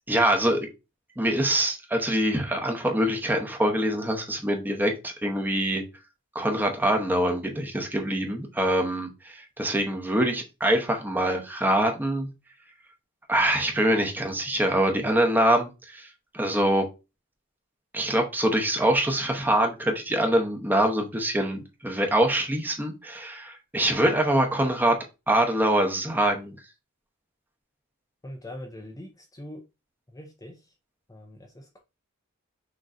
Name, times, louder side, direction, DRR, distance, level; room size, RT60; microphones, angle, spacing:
voice 1, 0.1-0.7 1.2-5.8 6.3-12.3 13.3-16.1 16.3-16.8 17.9-25.0 25.3-26.5, right 1 dB, 10° right, 0.9 m, -24 dB
voice 2, 28.2-29.6 30.1-30.6 31.1-31.8, left 1 dB, 15° left, 0.6 m, -42 dB
6.3 x 3.1 x 2.6 m
head